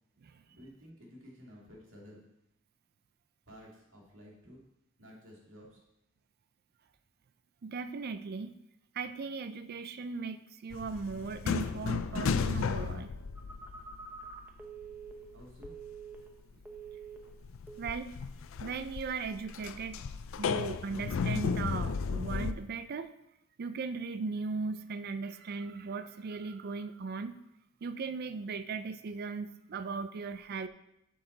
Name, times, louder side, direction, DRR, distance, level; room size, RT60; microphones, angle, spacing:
voice 1, 0.5-2.2 3.5-4.6 5.0-5.8 15.3-15.7, equal, 65° right, -3 dB, 2.4 m, -53 dB
voice 2, 7.6-8.6 8.9-13.1 17.8-18.2 18.6-20.1 20.4-23.1 23.6-27.4 27.8-30.7, right 4 dB, 50° right, 11 dB, 0.4 m, -38 dB
sound 1, 10.7-14.5 14.8-15.9 16.1-16.2 16.8-22.5, left 5 dB, 65° left, 0.4 m, -34 dB
Telephone, 13.4-16.4 16.7-17.3 17.7-18.0, right 5 dB, 10° right, 0.8 m, -47 dB
8.5 x 6.2 x 3.9 m, 0.82 s
head